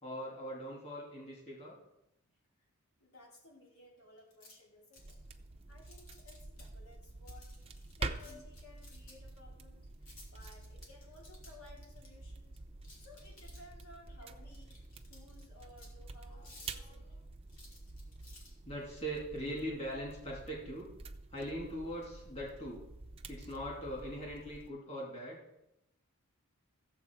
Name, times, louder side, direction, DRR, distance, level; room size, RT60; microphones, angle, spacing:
voice 1, 0.0-1.8 16.8-17.0 18.6-20.9 21.3-22.8 23.3-25.4, equal, 30° left, -4 dB, 2.8 m, -41 dB
voice 2, 3.0-5.2 5.7-7.5 8.0-12.6 12.9-14.7 15.1-17.2, left 2 dB, 80° left, -2 dB, 3.4 m, -58 dB
sound 1, 4.2-4.5 4.9-5.3 5.8-6.6 7.3-9.3 10.0-12.1 12.8-13.8 14.5-15.5 15.8-15.9 16.3-16.8 17.5-18.5, left 2 dB, 65° left, 2.9 m, -57 dB
sound 2, 5.0-24.7, right 3 dB, 25° right, 0.6 m, -48 dB
14.5 x 7.6 x 4.7 m, 0.87 s
head